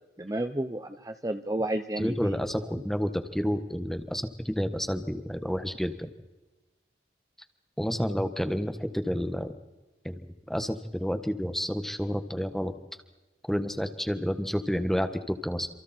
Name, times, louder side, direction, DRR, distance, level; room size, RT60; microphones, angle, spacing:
voice 1, 0.2-2.3, right 1 dB, 20° right, 8 dB, 0.7 m, -31 dB
voice 2, 2.0-5.9 7.8-9.5 10.0-12.7 13.5-15.7, equal, ahead, 8 dB, 1.5 m, -30 dB
28.0 x 27.5 x 4.5 m, 1.1 s
head